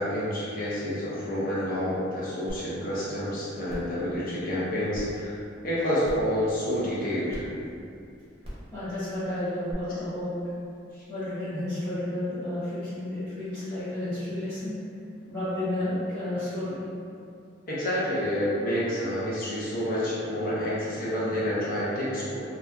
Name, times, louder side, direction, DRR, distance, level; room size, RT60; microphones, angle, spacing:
voice 1, 0.0-5.3 5.6-7.4 17.7-22.4, equal, 50° left, -8 dB, 0.7 m, -28 dB
sound 1, 2.5-2.6 3.0-3.1 3.7-3.9 4.9-5.0 6.0-6.3 7.3-7.4 8.4-8.7 9.7-9.8, equal, 30° right, 0.7 m, -38 dB
voice 2, 8.7-10.4 11.1-14.8 15.3-16.8, left 1 dB, 15° left, -17 dB, 0.7 m, -31 dB
2.7 x 2.4 x 2.2 m, 2.5 s
head